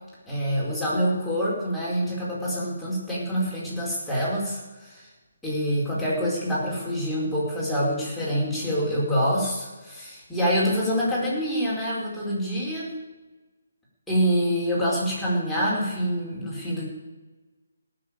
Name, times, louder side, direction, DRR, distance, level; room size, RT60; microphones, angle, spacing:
voice 1, 0.2-5.1 5.4-12.9 14.1-16.9, equal, ahead, -9 dB, 4.8 m, -26 dB
18.0 x 7.0 x 8.8 m, 1.2 s
figure-of-eight pair, 145°, 0 cm